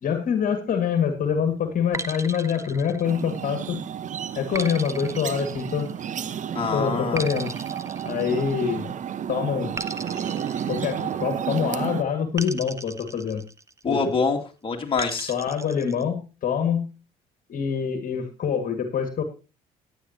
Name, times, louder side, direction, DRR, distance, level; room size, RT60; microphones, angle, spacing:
voice 1, 0.0-3.8 4.4-5.9 6.7-7.5 8.1-8.9 9.3-9.8 10.7-13.4 13.9-14.0 15.3-16.9 17.5-19.2, left 7 dB, 50° left, 7 dB, 2.0 m, -25 dB
sound 1, 1.9-3.6 4.5-6.2 7.2-8.9 9.8-11.5 12.4-13.9 15.0-16.0, right 3 dB, 15° right, 0.9 m, -37 dB
sound 2, 3.0-12.0, right 9 dB, 45° right, 0.8 m, -31 dB
voice 2, 6.5-7.2 8.3-8.4 13.8-15.3, left 4 dB, 30° left, 1 dB, 2.4 m, -25 dB
16.0 x 10.0 x 2.9 m, 0.30 s
hypercardioid pair, 60°, 18 cm